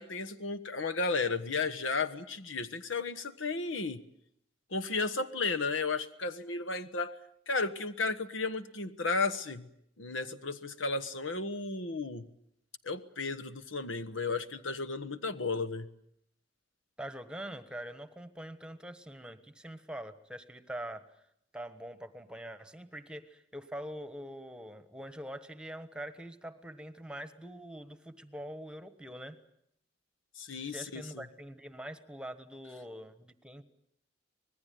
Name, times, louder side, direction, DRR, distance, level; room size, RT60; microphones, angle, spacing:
voice 1, 0.0-4.0 4.7-7.2 7.5-9.7 10.0-12.3 12.8-15.9 30.4-31.2, left 3 dB, 85° left, 10 dB, 1.3 m, -34 dB
voice 2, 17.0-21.2 21.5-29.4 30.6-33.6, equal, 5° right, 11 dB, 1.3 m, -44 dB
25.5 x 20.0 x 9.4 m, 0.75 s
head